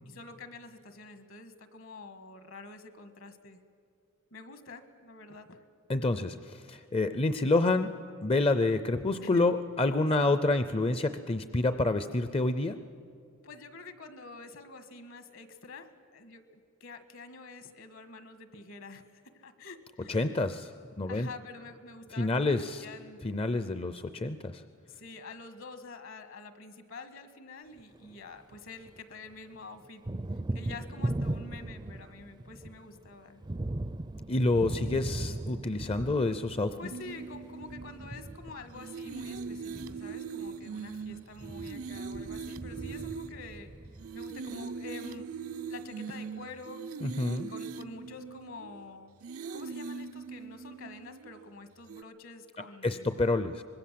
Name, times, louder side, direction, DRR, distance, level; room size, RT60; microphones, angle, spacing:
voice 1, 0.1-3.6 4.3-5.6 9.2-9.5 10.2-10.4 13.4-20.3 21.1-23.2 24.9-30.0 30.5-33.4 36.8-43.7 44.1-45.3 45.7-46.8 47.3-49.1 49.5-53.1, left 3 dB, 65° left, 10 dB, 1.7 m, -47 dB
voice 2, 5.9-7.9 8.2-12.8 20.1-20.7 21.0-21.3 22.2-22.8 23.2-24.6 34.3-36.7 47.0-47.5 52.8-53.6, left 2 dB, 25° left, 11 dB, 0.6 m, -28 dB
Thunder, 27.8-29.0 29.3-44.5, right 1 dB, 20° right, 0.5 m, -39 dB
sound 1, 36.9-38.4 38.7-43.6 44.0-48.8 49.2-51.5 51.9-52.0, right 5 dB, 85° right, 0.7 m, -41 dB
25.0 x 20.5 x 7.6 m, 2.4 s
head